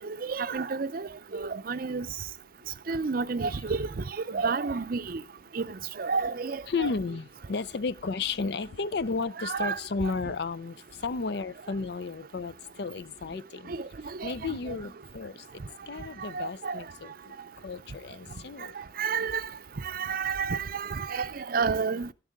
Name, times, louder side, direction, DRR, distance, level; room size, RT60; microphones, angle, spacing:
voice 1, 0.2-2.1 2.9-5.2 5.5-6.9 9.4-9.8 13.7-13.9 14.2-14.6 16.3-16.8 19.0-19.4 19.8-22.1, right 5 dB, 50° right, 0.5 m, -30 dB
voice 2, 6.7-13.8 14.2-18.8, left 4 dB, 60° left, 0.5 m, -33 dB
12.5 x 10.0 x 3.6 m
head